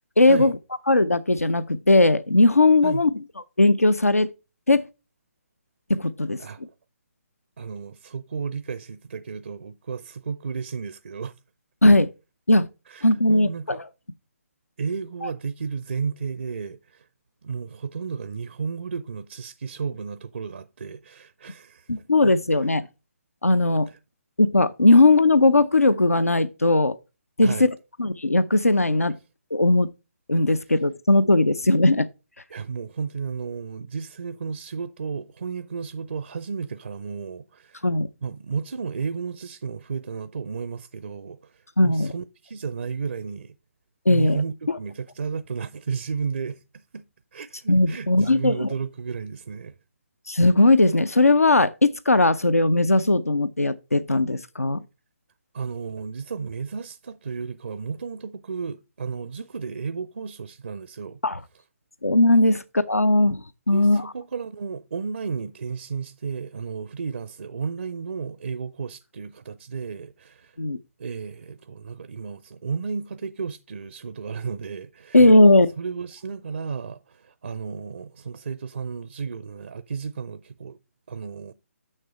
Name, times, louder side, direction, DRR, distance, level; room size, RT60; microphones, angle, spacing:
voice 1, 0.2-0.5 0.9-3.1 3.6-4.3 4.7-4.9 5.9-6.4 11.8-12.1 12.5-12.7 13.0-13.8 15.2-15.3 21.9-22.9 23.4-23.9 24.4-27.0 27.4-27.7 28.0-29.2 29.5-29.9 30.3-32.1 37.8-38.1 41.8-42.1 44.1-44.4 44.7-44.8 47.7-48.7 50.3-54.8 61.2-61.4 62.0-64.0 70.6-70.8 75.1-75.7, left 2 dB, 85° left, 0.5 m, -18 dB
voice 2, 7.6-11.3 12.9-13.8 14.8-17.1 17.4-21.9 23.9-24.0 27.4-27.7 32.5-37.9 38.2-43.5 44.1-46.6 46.9-47.0 47.3-49.7 55.5-61.2 63.7-70.6 71.0-75.3 75.8-80.8 81.1-81.5, right 5 dB, 55° right, 0.5 m, -33 dB
6.6 x 6.4 x 4.2 m
figure-of-eight pair, 140°, 8 cm